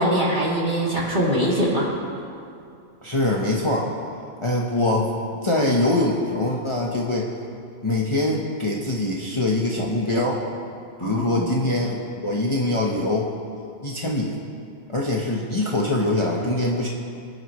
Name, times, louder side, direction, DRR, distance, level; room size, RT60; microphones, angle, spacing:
voice 1, 0.0-1.9 11.0-11.5, equal, 35° right, -6 dB, 3.2 m, -22 dB
voice 2, 3.0-3.9 4.4-5.1 5.4-7.3 7.8-10.4 11.0-13.3 13.8-14.4 14.9-16.9, left 2 dB, 25° left, -3 dB, 1.1 m, -23 dB
25.0 x 11.0 x 3.2 m, 2.4 s
omnidirectional pair, 1.3 m